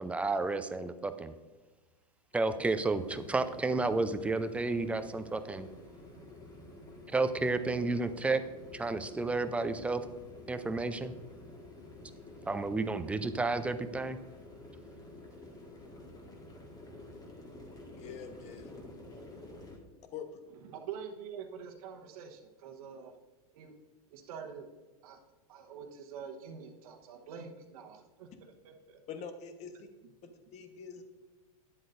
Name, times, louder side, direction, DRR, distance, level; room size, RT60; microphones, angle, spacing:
voice 1, 0.0-1.3 2.3-5.7 7.1-8.4 8.7-10.0 10.5-11.1 12.5-14.2, right 3 dB, 5° right, 10 dB, 0.4 m, -31 dB
sound 1, 2.3-19.8, left 2 dB, 20° left, 1.7 m, -50 dB
voice 2, 17.9-18.7 20.1-20.4 29.1-29.9 30.2-31.0, left 6 dB, 35° left, 8 dB, 1.1 m, -45 dB
voice 3, 20.6-23.1 23.5-23.7 24.1-24.7 25.0-25.2 25.5-28.3 28.6-29.0, right 7 dB, 70° right, 3 dB, 1.1 m, -45 dB
10.5 x 7.6 x 2.6 m, 1.2 s
hypercardioid pair, 115°, 20 cm